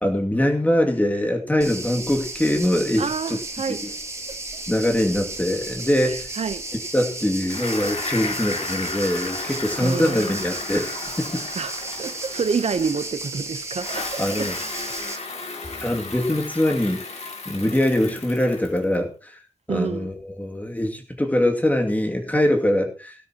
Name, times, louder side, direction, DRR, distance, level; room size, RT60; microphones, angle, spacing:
voice 1, 0.0-3.4 3.7-3.9 4.7-6.3 6.9-11.4 14.2-14.6 15.8-19.4 19.7-23.1, left 1 dB, 15° left, 2.4 m, -23 dB
sound 1, 1.6-15.2, right 2 dB, 25° right, 2.7 m, -34 dB
voice 2, 3.0-4.0 4.3-4.6 6.0-6.7 9.8-10.4 11.6-14.9 19.7-20.1, right 5 dB, 75° right, 0.8 m, -29 dB
Bicycle, 7.4-13.3 13.7-19.0, left 3 dB, 85° left, 2.8 m, -34 dB
17.5 x 12.5 x 2.9 m
wide cardioid pair, 110°, 11 cm